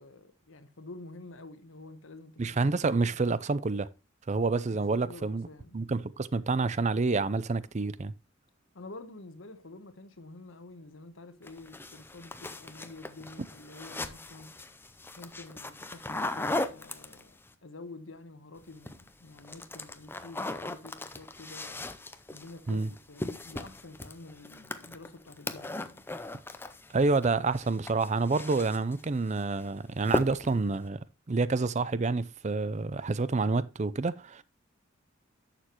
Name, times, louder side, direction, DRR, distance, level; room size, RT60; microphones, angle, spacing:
voice 1, 0.0-2.9 4.7-5.8 8.7-14.6 15.2-21.8 22.3-26.1, left 2 dB, 70° left, 1.1 m, -48 dB
voice 2, 2.4-3.9 4.3-5.5 5.7-8.1 22.7-22.9 26.9-31.0 31.3-34.4, right 3 dB, 35° right, 0.5 m, -28 dB
sound 1, 11.4-17.5 18.6-19.1 19.4-27.3 27.6-29.0 29.4-29.7 30.0-30.7, left 2 dB, 10° left, 0.6 m, -38 dB
11.5 x 6.7 x 3.0 m
head